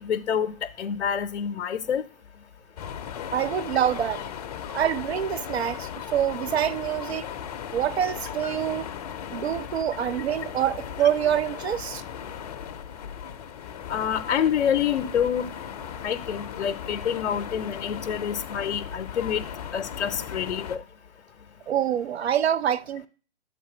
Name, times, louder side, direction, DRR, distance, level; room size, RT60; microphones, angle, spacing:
voice 1, 0.0-2.0 13.9-15.5 16.0-19.4 19.7-20.8, left 8 dB, 75° left, 0.6 m, -27 dB
sound 1, 2.8-20.8, left 8 dB, 35° left, 0.5 m, -37 dB
voice 2, 3.3-4.2 4.7-7.3 7.7-8.9 9.3-12.0 21.7-23.1, right 9 dB, 65° right, 0.6 m, -26 dB
7.0 x 3.9 x 4.8 m
figure-of-eight pair, 130°, 34 cm